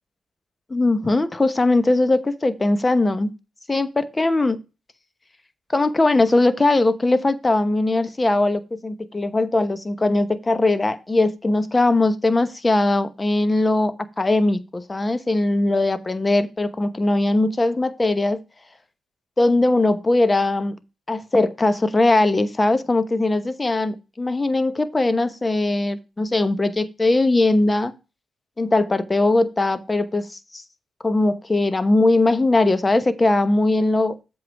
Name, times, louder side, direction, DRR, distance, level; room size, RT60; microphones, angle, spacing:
voice 1, 0.7-3.3 3.7-4.6 5.7-18.4 19.4-20.8 21.1-27.9 28.6-30.6 31.0-34.2, left 2 dB, 25° left, 1.0 m, -20 dB
7.8 x 4.8 x 4.7 m
hypercardioid pair, 45°, 0 cm